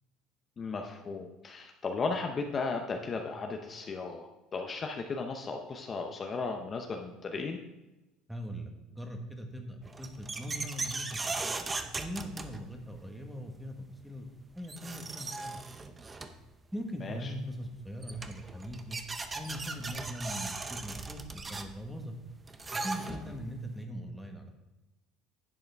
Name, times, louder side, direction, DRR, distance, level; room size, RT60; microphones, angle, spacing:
voice 1, 0.6-7.6 17.0-17.3 23.1-23.2, left 4 dB, 30° left, 3 dB, 0.7 m, -35 dB
voice 2, 8.3-11.5 11.9-15.9 16.7-19.0 19.3-22.2 22.7-24.5, equal, ahead, 3 dB, 1.3 m, -41 dB
sound 1, 9.8-13.0 14.3-14.4 14.6-16.5 17.7-17.8 18.0-23.5, right 3 dB, 20° right, 0.7 m, -38 dB
11.0 x 7.7 x 3.4 m, 1.0 s
cardioid pair, 125°, 0 cm